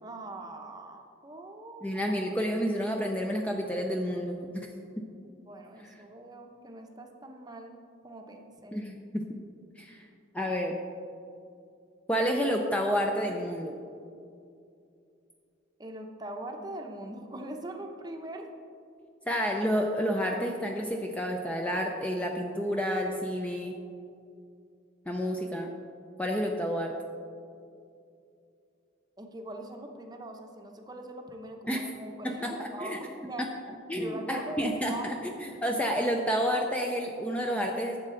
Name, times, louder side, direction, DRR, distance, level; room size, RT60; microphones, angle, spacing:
voice 1, 0.0-2.0 5.2-7.7 8.0-8.8 15.8-18.5 29.2-33.5 34.0-35.3, right 1 dB, 20° right, 3 dB, 0.7 m, -42 dB
voice 2, 1.8-4.7 8.7-9.4 9.8-10.0 10.3-10.7 12.1-13.8 19.3-23.8 25.1-25.7 26.2-26.9 31.7-31.8 32.2-33.0 33.4-33.5 33.9-35.1 35.4-38.0, equal, 5° left, 1 dB, 0.4 m, -30 dB
11.5 x 7.5 x 3.8 m, 2.5 s
head